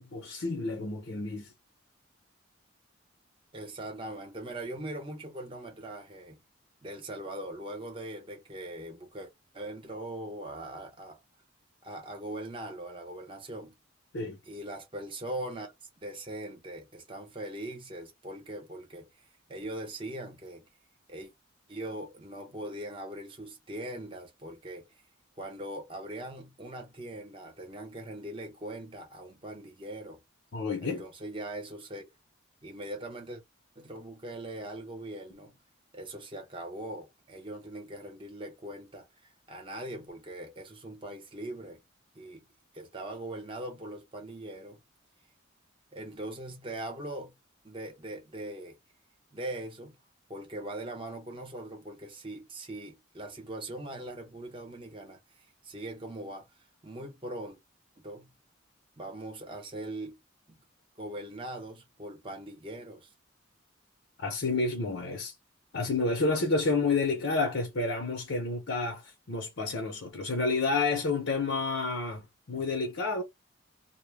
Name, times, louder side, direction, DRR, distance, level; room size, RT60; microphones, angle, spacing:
voice 1, 0.0-1.5 14.1-14.4 30.5-31.0 64.2-65.3 65.7-73.2, left 3 dB, 65° left, 0.7 m, -30 dB
voice 2, 3.5-6.4 6.8-11.2 11.8-13.8 14.5-15.7 16.0-19.1 19.5-20.7 21.1-21.3 21.7-24.9 25.4-30.2 30.8-32.1 32.6-33.4 33.8-35.6 35.9-39.1 39.5-41.8 42.1-42.5 42.7-44.8 45.9-47.3 47.6-48.8 49.3-50.0 50.3-55.2 55.6-56.5 56.8-57.6 58.0-58.3 59.0-60.2 60.5-60.6 61.0-63.1, right 1 dB, 25° right, 0.8 m, -41 dB
2.2 x 2.0 x 3.3 m
head